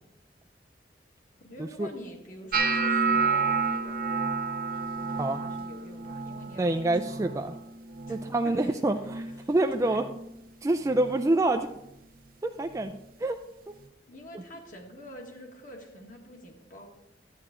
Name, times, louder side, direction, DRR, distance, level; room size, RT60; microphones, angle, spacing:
voice 1, 1.4-4.0 4.9-7.5 8.1-8.2 8.4-8.8 9.2-10.0 14.1-17.0, equal, 50° left, 1 dB, 1.7 m, -47 dB
sound 1, 2.5-8.6 8.9-9.4 9.8-10.3 10.9-11.1 12.9-13.0, right 4 dB, 55° right, 0.7 m, -30 dB
voice 2, 6.6-7.5 8.1-10.0 10.6-11.7 12.4-13.4, right 2 dB, 15° right, 4 dB, 0.3 m, -27 dB
11.0 x 8.9 x 3.7 m, 0.84 s
head